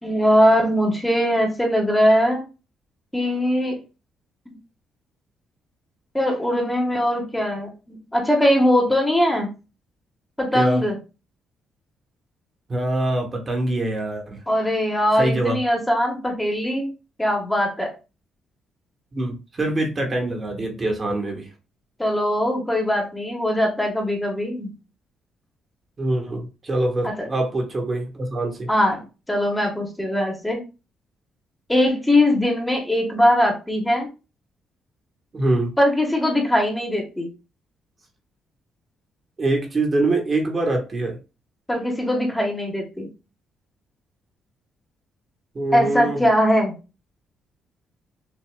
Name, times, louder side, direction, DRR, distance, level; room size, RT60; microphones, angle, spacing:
voice 1, 0.0-2.5 3.1-3.8 6.1-9.5 10.4-11.0 14.5-16.9 17.2-17.9 22.0-24.7 27.0-27.3 28.7-30.6 31.7-34.1 35.8-37.3 41.7-43.1 45.7-46.7, equal, 10° left, 1 dB, 1.4 m, -21 dB
voice 2, 12.7-14.4 15.2-15.6 19.1-21.5 26.0-28.7 35.3-35.7 39.4-41.2 45.5-46.2, right 2 dB, 35° right, 2 dB, 1.4 m, -24 dB
6.2 x 2.9 x 2.3 m, 0.30 s
cardioid pair, 90°, 0 cm